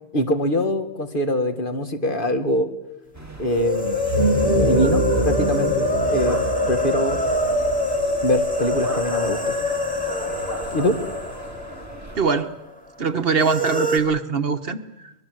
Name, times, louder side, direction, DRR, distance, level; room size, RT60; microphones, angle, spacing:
voice 1, 0.1-2.7 3.4-4.0 4.6-5.8 6.1-6.4 6.7-7.2 8.2-9.6 10.7-11.0, equal, 55° left, 7 dB, 2.0 m, -23 dB
sound 1, 3.1-12.2, equal, 15° right, 2.5 m, -38 dB
sound 2, 3.5-12.3 12.6-12.7 13.4-14.0, left 1 dB, 5° left, 2.9 m, -24 dB
sound 3, 4.0-8.8, right 2 dB, 30° left, 4.3 m, -25 dB
voice 2, 12.2-12.5 13.0-15.1, right 5 dB, 65° right, 11 dB, 1.3 m, -22 dB
24.0 x 20.5 x 7.8 m, 0.93 s
omnidirectional pair, 1.1 m